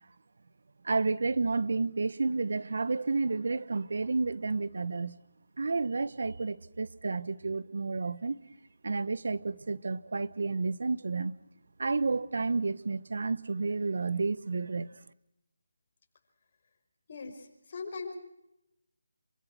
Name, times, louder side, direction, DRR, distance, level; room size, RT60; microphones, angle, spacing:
voice 1, 0.8-5.2 5.6-8.4 8.8-11.3 11.8-14.9, right 3 dB, 60° right, 1.2 m, -31 dB
voice 2, 17.1-18.1, left 4 dB, 40° left, 5.6 m, -40 dB
27.0 x 24.5 x 6.2 m
figure-of-eight pair, 160°, 0 cm